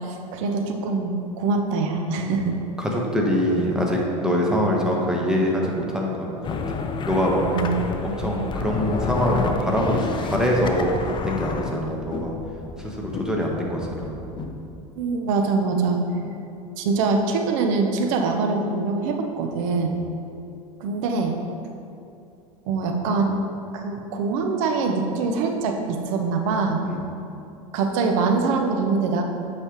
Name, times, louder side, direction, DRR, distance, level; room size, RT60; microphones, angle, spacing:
voice 1, 0.0-2.5 7.5-7.7 8.2-8.4 14.9-16.0 16.8-20.0 20.8-21.3 22.7-23.4 23.7-26.8 27.7-29.2, right 4 dB, 65° right, 3 dB, 0.9 m, -24 dB
voice 2, 2.8-6.3 7.0-7.4 8.0-10.9 11.2-12.3 12.8-14.2 19.8-20.0 26.8-27.0, equal, 5° right, -2 dB, 1.2 m, -24 dB
sound 1, 6.4-14.9, left 4 dB, 25° left, 0.6 m, -30 dB
7.9 x 5.3 x 3.1 m, 2.6 s
hypercardioid pair, 85°, 18 cm